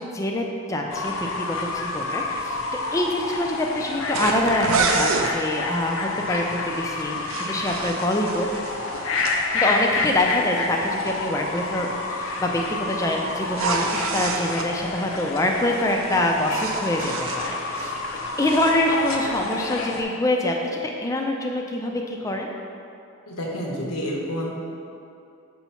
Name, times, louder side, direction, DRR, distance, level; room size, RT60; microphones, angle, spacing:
voice 1, 0.0-8.5 9.5-12.6 12.9-13.9 14.1-18.0 18.4-20.5 20.8-22.5, left 1 dB, 15° left, 1 dB, 0.4 m, -25 dB
Fowl / Bird, 0.9-20.0, left 3 dB, 65° left, 0.6 m, -29 dB
sound 1, 4.1-5.3 7.0-9.4 13.5-14.7 16.1-18.0 18.3-18.8, right 4 dB, 70° right, 0.5 m, -28 dB
voice 2, 23.3-24.5, equal, 85° left, -2 dB, 1.1 m, -29 dB
7.0 x 3.0 x 5.6 m, 2.6 s
head